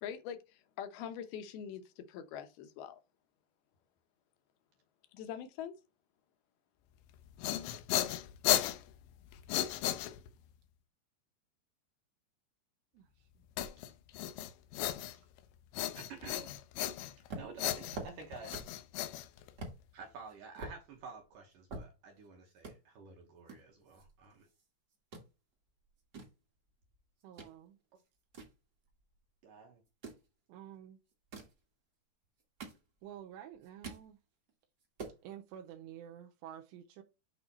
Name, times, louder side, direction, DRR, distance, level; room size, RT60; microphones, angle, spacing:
voice 1, 0.0-3.0 5.1-5.7, left 8 dB, 75° left, 2.6 m, -43 dB
sound 1, 7.1-10.5 13.6-15.4 15.7-17.3 17.6-19.8, left 13 dB, 90° left, 2.9 m, -35 dB
voice 2, 12.9-13.4 27.2-27.8 30.5-31.0 33.0-34.2 35.2-37.0, right 10 dB, 85° right, 2.9 m, -50 dB
voice 3, 16.0-16.5 17.3-18.6 19.9-24.5 29.4-29.8, right 5 dB, 65° right, 2.3 m, -50 dB
sound 2, 17.3-18.8 19.2-19.3 19.6-19.8 20.3-22.3 22.6-22.8 23.5-24.7 24.9-25.3 25.8-27.5 27.9-29.2 29.9-30.3 31.1-31.6 32.2-33.2 33.5-34.1 34.5-34.6 34.8-35.2, right 3 dB, 50° right, 1.2 m, -47 dB
8.4 x 3.4 x 4.2 m
omnidirectional pair, 5.0 m